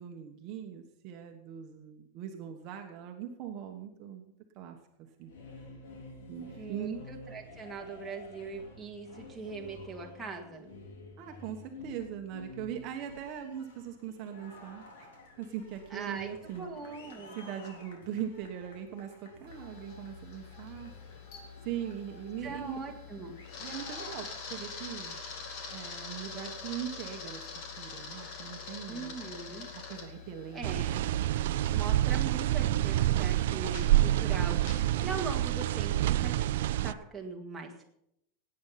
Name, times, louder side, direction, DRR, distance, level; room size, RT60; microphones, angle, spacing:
voice 1, 0.0-4.8 5.2-5.3 6.3-7.0 11.2-14.8 15.4-16.7 17.3-20.9 21.6-22.8 23.6-25.2 25.7-29.1 29.7-30.7, right 9 dB, 35° right, 3 dB, 1.2 m, -40 dB
sound 1, 5.2-24.8, left 3 dB, 85° left, 3.4 m, -51 dB
voice 2, 6.5-10.7 15.9-17.4 22.4-23.3 28.9-29.7 30.5-31.1 31.7-37.9, right 4 dB, 5° right, -2 dB, 1.9 m, -41 dB
Camera, 19.5-35.1, left 5 dB, 40° left, 2.2 m, -45 dB
sound 2, 30.6-36.9, right 14 dB, 75° right, 0.5 m, -27 dB
17.5 x 8.9 x 5.8 m, 0.78 s
supercardioid pair, 175°, 0 cm